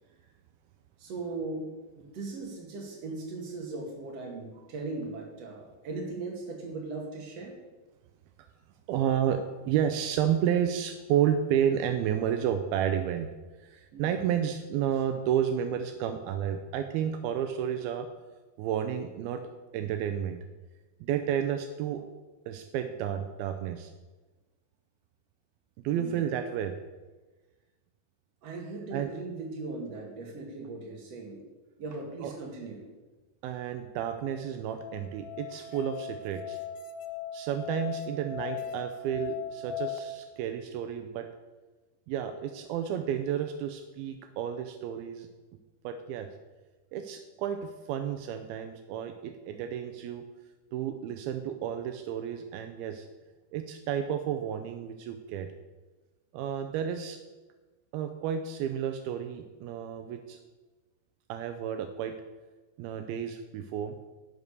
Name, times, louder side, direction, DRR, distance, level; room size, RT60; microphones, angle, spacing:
voice 1, 1.0-7.6 13.9-14.1 26.0-26.2 28.4-31.4 31.8-32.9, right 3 dB, 45° right, 0 dB, 2.7 m, -38 dB
voice 2, 8.9-13.3 13.6-18.1 18.6-19.4 19.7-20.4 21.0-22.0 22.5-23.9 25.8-26.7 28.9-29.1 32.2-32.3 33.4-36.6 37.3-41.3 42.1-45.3 45.8-46.3 46.9-50.3 50.7-53.1 53.5-55.5 56.3-57.2 57.9-60.4 61.3-62.1 62.8-64.0, right 9 dB, 85° right, 7 dB, 2.5 m, -31 dB
Musical instrument, 34.3-40.0, left 9 dB, 80° left, 2.4 m, -38 dB
11.0 x 6.8 x 6.7 m, 1.2 s
omnidirectional pair, 4.5 m